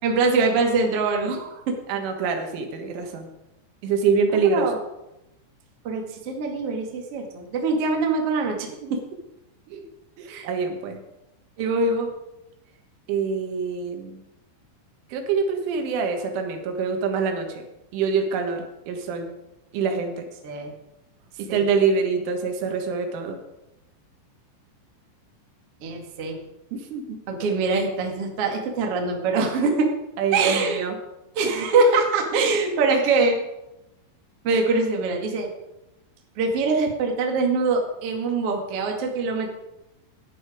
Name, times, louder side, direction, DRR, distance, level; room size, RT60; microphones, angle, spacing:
voice 1, 0.0-1.7 4.5-4.8 5.8-9.0 10.3-10.5 11.6-12.1 20.4-20.7 21.5-21.6 25.8-26.4 27.3-29.9 30.3-30.8 31.4-33.4 34.4-35.5 36.4-39.5, right 3 dB, 45° right, 1 dB, 2.1 m, -23 dB
voice 2, 1.9-3.3 3.8-4.7 8.8-8.9 9.7-9.9 10.2-11.0 13.1-14.2 15.1-17.7 17.9-19.3 19.7-20.3 21.5-23.4 26.7-27.2 30.2-31.0, right 5 dB, 80° right, 5 dB, 4.1 m, -25 dB
17.0 x 10.5 x 5.0 m, 0.92 s
omnidirectional pair, 5.5 m